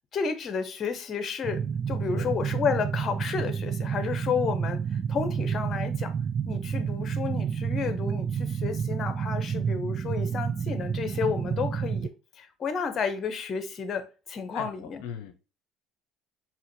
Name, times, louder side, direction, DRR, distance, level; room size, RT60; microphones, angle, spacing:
voice 1, 0.1-6.1 6.5-15.0, left 6 dB, 45° left, 0.9 m, -31 dB
sound 1, 1.4-12.1, right 7 dB, 40° right, 0.3 m, -30 dB
voice 2, 14.5-15.3, left 8 dB, 80° left, 0.6 m, -39 dB
4.9 x 2.9 x 3.1 m
supercardioid pair, 75°, 0 cm